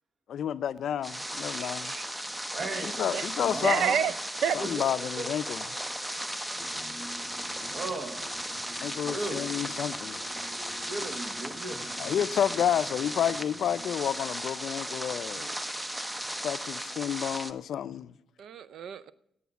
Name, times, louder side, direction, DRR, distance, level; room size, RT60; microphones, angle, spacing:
voice 1, 0.3-2.0 2.8-3.8 4.5-5.8 6.6-7.3 7.6-7.8 8.8-10.2 12.0-15.6 16.4-18.1, left 9 dB, 70° left, 0.4 m, -30 dB
sound 1, 1.0-17.5, equal, 10° right, 0.6 m, -36 dB
voice 2, 1.6-2.1 3.1-3.3 3.6-4.1 4.4-4.6 18.4-19.1, right 8 dB, 75° right, 0.5 m, -29 dB
voice 3, 2.5-4.0 4.6-4.9 5.2-5.3 7.7-8.3 9.1-9.5 10.9-11.9, right 2 dB, 45° right, 1.1 m, -36 dB
sound 2, 6.6-13.8, left 2 dB, 15° left, 2.3 m, -49 dB
9.3 x 8.4 x 6.9 m
cardioid pair, 110°, 0 cm